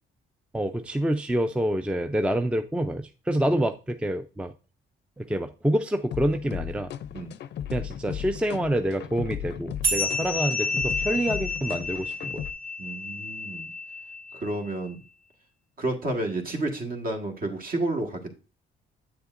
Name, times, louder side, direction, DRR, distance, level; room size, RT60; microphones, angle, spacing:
voice 1, 0.5-4.5 5.2-6.9 7.7-12.4, right 1 dB, 5° right, 8 dB, 0.4 m, -27 dB
sound 1, 6.1-12.5, left 10 dB, 60° left, 0.5 m, -36 dB
sound 2, 9.8-14.7, left 2 dB, 85° right, 4.0 m, -30 dB
voice 2, 12.8-13.7 14.3-15.0 15.8-18.4, right 2 dB, 45° right, 3 dB, 1.7 m, -31 dB
7.8 x 6.9 x 2.5 m, 0.33 s
cardioid pair, 90°, 20 cm